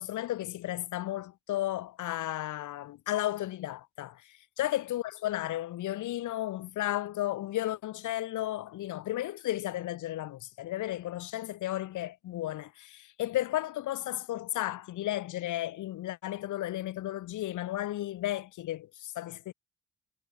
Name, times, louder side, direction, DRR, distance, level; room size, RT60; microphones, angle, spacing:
voice 1, 0.0-19.5, left 14 dB, 80° left, 2.3 m, -34 dB
cardioid pair, 90°, 30 cm